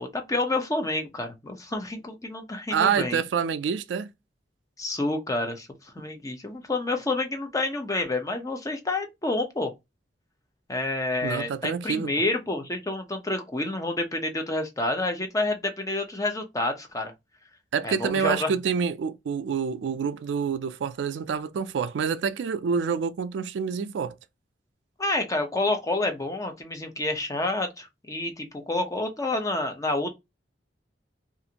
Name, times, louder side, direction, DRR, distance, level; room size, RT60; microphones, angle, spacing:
voice 1, 0.0-3.2 4.8-5.7 6.0-9.7 10.7-17.1 17.8-18.5 25.0-30.1, left 2 dB, 20° left, 0.5 m, -28 dB
voice 2, 2.7-4.1 11.2-12.1 17.7-24.2, right 6 dB, 85° right, 0.3 m, -27 dB
2.5 x 2.5 x 2.8 m
head